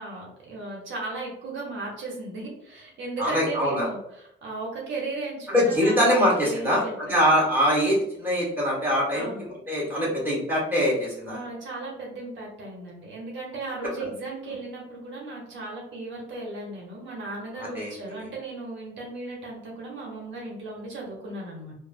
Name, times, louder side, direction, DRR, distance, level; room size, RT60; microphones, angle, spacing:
voice 1, 0.0-7.3 9.1-9.4 11.3-21.7, right 2 dB, 70° right, -2 dB, 0.9 m, -36 dB
voice 2, 3.2-3.9 5.5-6.8 7.1-9.3 9.7-11.4 17.7-17.9, equal, 10° right, -5 dB, 1.5 m, -23 dB
3.1 x 2.0 x 2.5 m, 0.77 s
cardioid pair, 90°, 20 cm